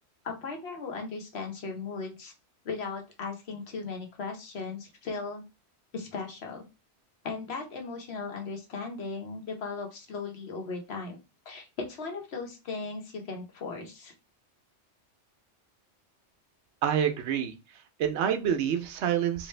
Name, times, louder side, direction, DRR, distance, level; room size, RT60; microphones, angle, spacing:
voice 1, 0.2-2.3 2.6-5.4 5.9-6.6 7.2-11.2 11.5-14.1, left 4 dB, 65° left, 3 dB, 1.1 m, -37 dB
voice 2, 16.8-17.5 18.0-19.5, right 9 dB, 75° right, 7 dB, 0.8 m, -27 dB
3.1 x 2.6 x 3.2 m, 0.27 s
omnidirectional pair, 1.2 m